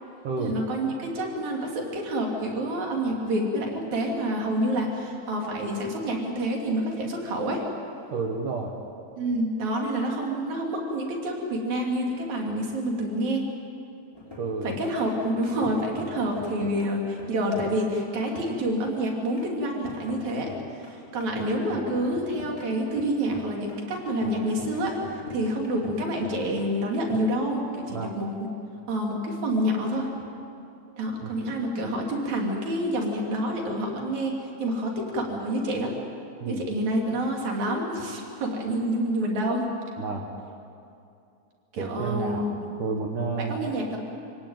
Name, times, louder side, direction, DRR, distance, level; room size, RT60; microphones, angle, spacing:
voice 1, 0.4-7.7 9.2-13.4 14.6-28.3 28.9-30.1 31.0-35.9 36.5-39.7 41.7-42.9 43.4-44.0, right 1 dB, 40° right, 0 dB, 4.0 m, -28 dB
voice 2, 8.1-8.7 14.4-14.7 27.9-28.1 31.2-31.3 36.4-36.6 40.0-40.2 41.8-43.7, right 4 dB, 65° right, 1 dB, 2.2 m, -30 dB
sound 1, 14.1-27.1, left 3 dB, 5° left, 4.3 m, -42 dB
27.0 x 17.5 x 9.2 m, 2.6 s
omnidirectional pair, 5.6 m